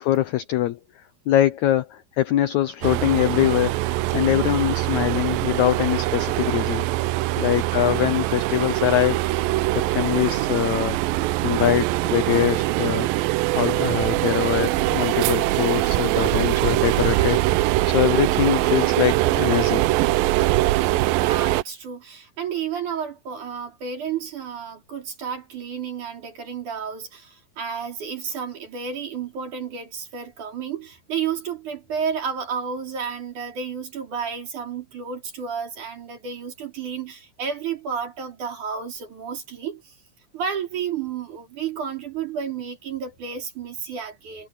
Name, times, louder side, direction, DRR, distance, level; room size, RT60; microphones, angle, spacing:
voice 1, 0.0-3.8 4.1-6.9 7.4-9.2 9.7-11.0 11.4-17.4 17.8-19.9, left 13 dB, 80° left, 1.7 m, -23 dB
sound 1, 2.8-21.6, right 18 dB, 80° right, 2.3 m, -22 dB
voice 2, 21.1-40.0 40.3-44.5, right 7 dB, 55° right, 5.4 m, -31 dB
omnidirectional pair, 4.2 m